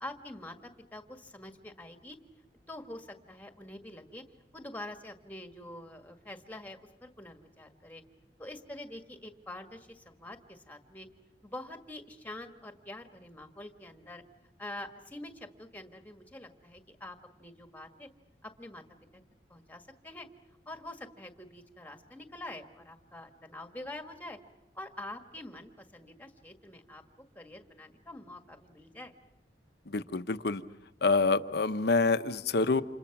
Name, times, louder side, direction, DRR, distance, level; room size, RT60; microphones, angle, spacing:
voice 1, 0.0-2.2 2.7-4.2 4.5-8.0 8.4-11.1 11.4-14.2 14.6-18.1 18.4-18.8 19.1-19.2 19.5-20.3 20.7-24.4 24.8-27.0 27.4-29.1, left 1 dB, 10° left, 6 dB, 1.7 m, -45 dB
voice 2, 29.9-30.6 31.0-32.8, left 3 dB, 65° left, 11 dB, 0.9 m, -27 dB
30.0 x 27.5 x 6.0 m, 0.89 s
head